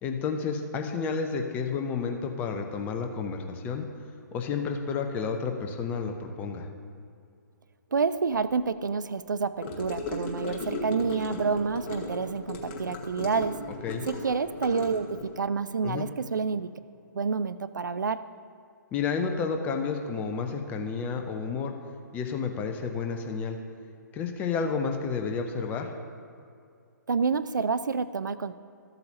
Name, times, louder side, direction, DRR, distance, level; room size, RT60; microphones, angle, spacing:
voice 1, 0.0-3.8 4.3-6.7 13.8-14.0 15.8-16.0 18.9-21.7 22.1-23.6 24.1-25.9, left 5 dB, 15° left, 4 dB, 0.6 m, -31 dB
voice 2, 7.9-13.6 14.1-16.7 17.1-18.2 27.1-28.6, right 5 dB, 65° right, 14 dB, 0.4 m, -28 dB
Gurgling / Car passing by / Sink (filling or washing), 9.6-15.3, left 2 dB, 30° left, 1.3 m, -36 dB
14.0 x 7.8 x 2.8 m, 2.4 s
figure-of-eight pair, 130°, 11 cm